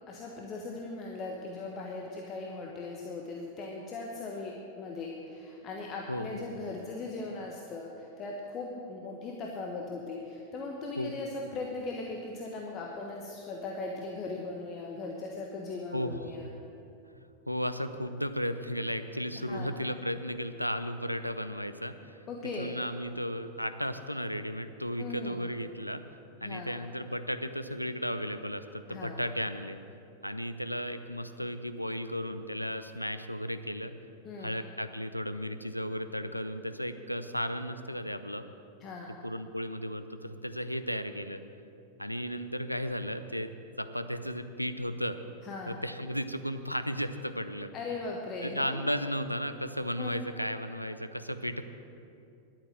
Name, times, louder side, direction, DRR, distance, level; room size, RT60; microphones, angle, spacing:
voice 1, 0.1-16.5 19.4-19.7 22.3-22.8 25.0-25.5 26.4-26.7 28.9-29.2 34.2-34.6 38.8-39.1 45.4-45.8 47.7-48.8 50.0-50.1, left 3 dB, 30° left, 0 dB, 1.3 m, -39 dB
voice 2, 6.1-6.6 11.0-11.1 15.9-16.6 17.5-22.2 22.6-26.0 26.4-29.8 30.2-33.9 34.4-38.5 39.2-41.4 42.0-43.5 43.8-45.2 45.7-47.7 48.4-51.6, equal, 90° left, 10 dB, 0.6 m, -34 dB
11.5 x 8.8 x 7.7 m, 2.6 s
figure-of-eight pair, 90°, 0 cm